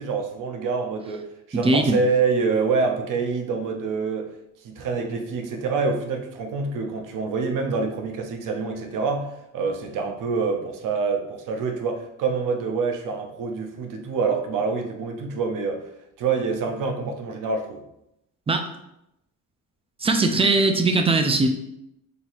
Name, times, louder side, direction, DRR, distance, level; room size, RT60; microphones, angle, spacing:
voice 1, 0.0-4.3 4.6-15.8 16.2-17.8, right 4 dB, 70° right, 4 dB, 0.6 m, -26 dB
voice 2, 1.6-2.0 18.5-18.7 20.0-21.5, right 3 dB, 20° right, 5 dB, 0.3 m, -20 dB
3.9 x 2.8 x 2.5 m, 0.83 s
cardioid pair, 95°, 34 cm